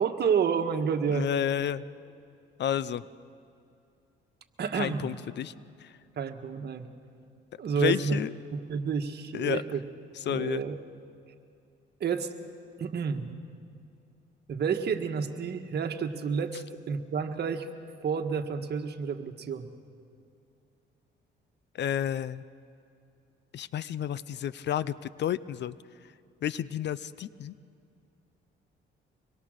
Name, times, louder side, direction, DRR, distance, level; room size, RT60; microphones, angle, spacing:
voice 1, 0.0-1.3 4.6-5.1 6.2-6.9 7.6-8.2 8.5-9.8 10.2-10.8 12.0-12.3 12.8-13.3 14.5-17.7 18.0-19.7, right 6 dB, 55° right, 6 dB, 1.6 m, -30 dB
voice 2, 1.1-1.8 2.6-3.0 4.7-5.5 5.8-5.9 7.8-8.3 9.3-9.6 10.3-10.6 21.8-22.4 23.5-25.8 26.4-27.5, left 10 dB, 60° left, 18 dB, 0.7 m, -31 dB
25.0 x 21.5 x 6.6 m, 2.5 s
cardioid pair, 90°, 20 cm